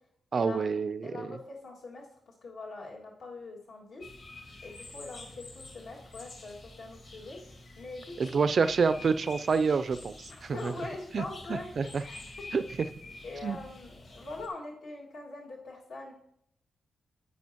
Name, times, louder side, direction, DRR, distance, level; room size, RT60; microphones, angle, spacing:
voice 1, 0.3-1.3 8.2-10.7 11.1-11.2 11.5-12.0 12.5-12.6 13.4-13.6, right 5 dB, 45° right, 13 dB, 0.3 m, -28 dB
voice 2, 1.0-4.1 4.6-7.4 7.8-8.1 10.4-12.2 13.2-16.1, left 3 dB, 75° left, -2 dB, 2.0 m, -43 dB
sound 1, 4.0-14.5, left 2 dB, 50° left, 1.9 m, -48 dB
10.5 x 8.4 x 2.9 m, 0.71 s
wide cardioid pair, 160°, 0 cm